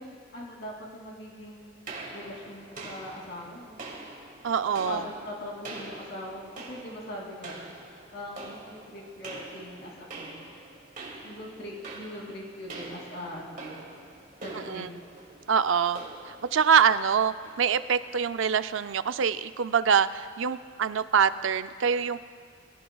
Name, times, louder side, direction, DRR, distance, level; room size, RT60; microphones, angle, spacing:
voice 1, 0.0-1.8 2.1-3.9 4.7-10.5 11.2-13.8 14.4-14.9, left 1 dB, 55° left, -2 dB, 2.8 m, -41 dB
sound 1, 1.9-18.2, right 2 dB, 40° right, 2.4 m, -44 dB
voice 2, 4.4-5.1 14.5-14.9 15.5-22.2, right 7 dB, 70° right, 12 dB, 0.5 m, -25 dB
22.0 x 17.0 x 2.4 m, 2.1 s
head